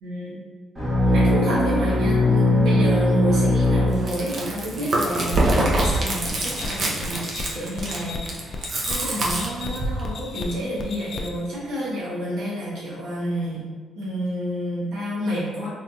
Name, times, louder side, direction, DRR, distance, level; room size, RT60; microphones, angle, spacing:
voice 1, 0.0-0.4 1.0-8.2 8.9-13.7 13.9-15.7, equal, 80° right, -7 dB, 1.3 m, -29 dB
sound 1, 0.7-4.6, left 1 dB, 25° right, 1.1 m, -20 dB
Chewing mastication, 3.9-10.0, right 2 dB, 55° right, 0.6 m, -25 dB
sound 2, 5.8-11.5, left 3 dB, 50° left, 0.4 m, -35 dB
3.5 x 2.8 x 2.3 m, 1.5 s
cardioid pair, 90°, 0 cm